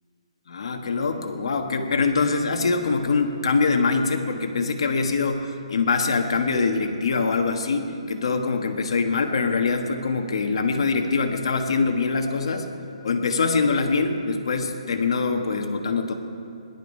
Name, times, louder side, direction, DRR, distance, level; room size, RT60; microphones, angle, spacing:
voice 1, 0.5-12.7 13.0-16.1, left 4 dB, 55° left, 5 dB, 1.4 m, -24 dB
17.5 x 11.5 x 5.5 m, 2.6 s
hypercardioid pair, 175°, 3 cm